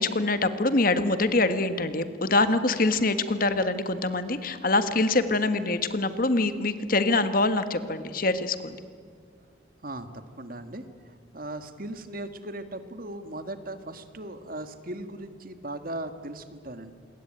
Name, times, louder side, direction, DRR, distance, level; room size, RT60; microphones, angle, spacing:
voice 1, 0.0-8.8, left 2 dB, 45° left, 10 dB, 1.6 m, -24 dB
voice 2, 9.8-16.9, right 1 dB, 50° right, 10 dB, 1.8 m, -38 dB
27.5 x 22.0 x 9.1 m, 2.1 s
head